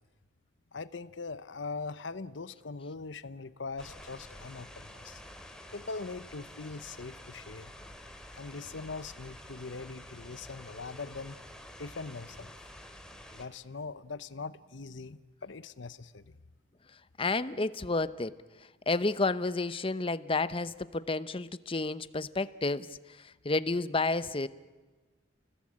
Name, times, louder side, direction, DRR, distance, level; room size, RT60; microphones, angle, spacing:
voice 1, 0.7-5.2 5.7-7.7 8.3-11.4 11.8-12.5 13.3-16.3, left 4 dB, 75° left, 14 dB, 0.9 m, -41 dB
sound 1, 3.8-13.5, left 1 dB, 5° left, 2.6 m, -49 dB
voice 2, 17.2-18.3 18.9-22.9 23.2-24.5, left 3 dB, 30° left, 15 dB, 0.8 m, -30 dB
29.5 x 20.5 x 8.7 m, 1.3 s
head